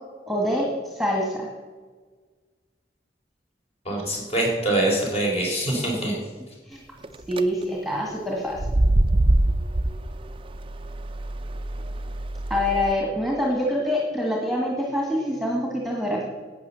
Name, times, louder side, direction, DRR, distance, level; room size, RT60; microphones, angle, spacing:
voice 1, 0.3-0.7 1.0-1.5 6.7-6.8 7.3-8.6 12.5-16.2, left 1 dB, ahead, -1 dB, 1.9 m, -25 dB
voice 2, 3.8-6.2, right 1 dB, 35° left, -1 dB, 4.2 m, -24 dB
sound 1, 7.0-7.4 8.5-12.9, right 1 dB, 30° right, 0.6 m, -24 dB
12.0 x 8.5 x 7.1 m, 1.4 s
head